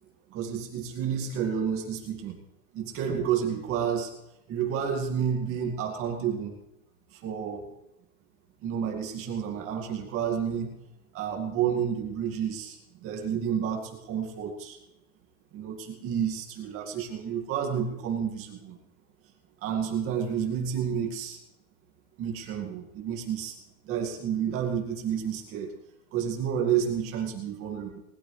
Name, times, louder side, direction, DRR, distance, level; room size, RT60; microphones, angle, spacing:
voice 1, 0.3-2.4 2.7-4.1 4.5-6.5 7.1-7.7 8.6-10.7 11.1-14.8 15.5-18.8 19.6-21.4 22.2-23.6 23.8-25.7 26.1-28.0, right 8 dB, 30° right, 1 dB, 2.3 m, -30 dB
20.0 x 14.0 x 3.3 m, 0.86 s
supercardioid pair, 175°, 43 cm